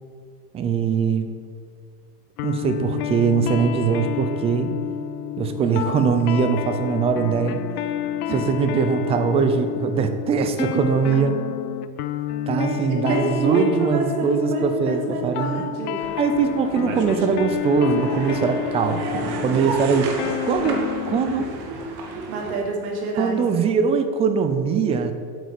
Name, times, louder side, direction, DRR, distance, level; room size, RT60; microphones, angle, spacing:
voice 1, 0.5-1.3 2.4-4.7 5.4-7.6 8.3-11.4 12.5-15.7 16.2-21.5 23.2-25.1, right 6 dB, 15° right, 8 dB, 0.4 m, -22 dB
sound 1, 2.4-21.5, left 11 dB, 70° left, 0.8 m, -29 dB
voice 2, 5.6-6.1 8.3-8.4 12.5-16.1 19.1-19.6 22.3-23.7, right 3 dB, 65° right, -1 dB, 3.4 m, -28 dB
sound 2, 16.0-22.5, right 3 dB, 45° right, 1.8 m, -33 dB
9.3 x 8.4 x 8.2 m, 2.1 s
supercardioid pair, 155°, 47 cm